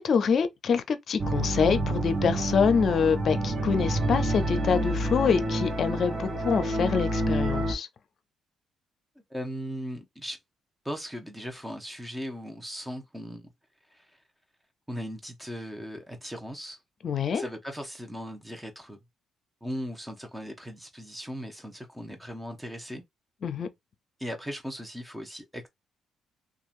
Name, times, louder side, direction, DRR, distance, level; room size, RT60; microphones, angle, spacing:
voice 1, 0.0-7.9 17.0-17.4 23.4-23.7, left 6 dB, 55° left, 0.6 m, -25 dB
sound 1, 1.2-7.7, right 1 dB, 35° right, 0.9 m, -28 dB
voice 2, 9.3-10.4 10.8-13.5 13.9-14.0 14.9-16.8 17.3-19.0 19.6-23.0 24.2-25.7, equal, 5° right, 0.9 m, -38 dB
2.9 x 2.4 x 2.6 m
cardioid pair, 90°, 0 cm